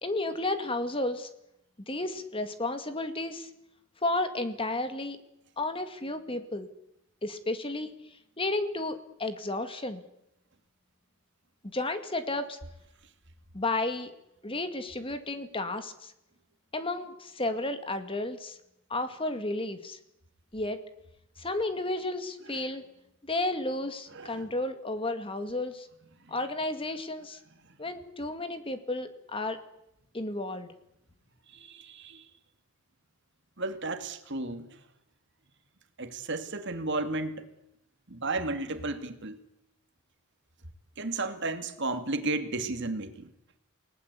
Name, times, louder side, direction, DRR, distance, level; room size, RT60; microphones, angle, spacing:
voice 1, 0.0-1.3 1.9-3.5 4.0-5.2 5.6-6.7 7.2-7.9 8.4-10.0 11.7-12.6 13.5-14.1 14.4-16.1 16.7-18.6 18.9-20.0 20.5-20.8 21.4-22.8 23.3-25.9 26.3-27.4 27.8-29.6 30.1-30.7, left 2 dB, 25° left, 9 dB, 2.0 m, -32 dB
voice 2, 24.2-24.5 31.5-32.2 33.6-34.7 36.0-37.4 38.1-39.4 41.0-43.3, right 2 dB, 55° right, 8 dB, 2.4 m, -33 dB
29.5 x 19.0 x 8.3 m, 0.83 s
head